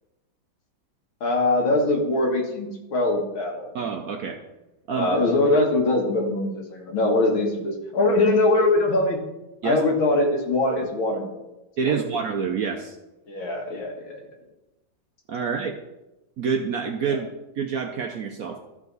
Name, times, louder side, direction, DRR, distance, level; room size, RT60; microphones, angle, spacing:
voice 1, 1.2-3.7 4.9-9.2 9.6-11.3 11.8-12.1 13.3-14.2 17.1-17.2, left 2 dB, 85° left, 1 dB, 2.4 m, -22 dB
voice 2, 3.7-4.4 4.9-5.1 9.6-9.8 11.8-13.0 15.3-15.7 16.4-17.3 17.6-18.6, right 6 dB, 65° right, 4 dB, 0.9 m, -27 dB
13.5 x 5.0 x 4.0 m, 0.97 s
omnidirectional pair, 2.1 m